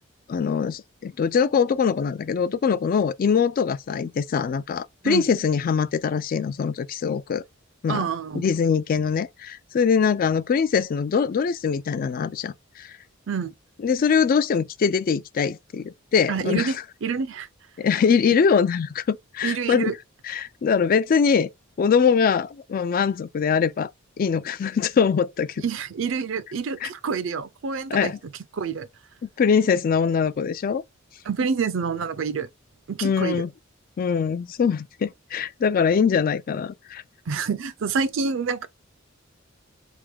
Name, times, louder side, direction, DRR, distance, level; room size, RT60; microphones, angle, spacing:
voice 1, 0.3-7.4 7.8-8.1 8.3-12.9 13.8-16.8 17.8-19.9 20.2-21.5 21.8-23.9 24.2-25.6 26.8-26.9 27.9-28.2 29.4-30.8 33.0-33.5 34.0-37.0, left 6 dB, 45° left, 0.3 m, -23 dB
voice 2, 7.9-8.5 13.3-13.5 16.3-17.5 19.4-20.0 25.6-28.1 28.5-28.9 31.3-32.5 32.9-33.4 37.3-38.7, right 5 dB, 65° right, 0.5 m, -27 dB
3.5 x 3.0 x 3.4 m
head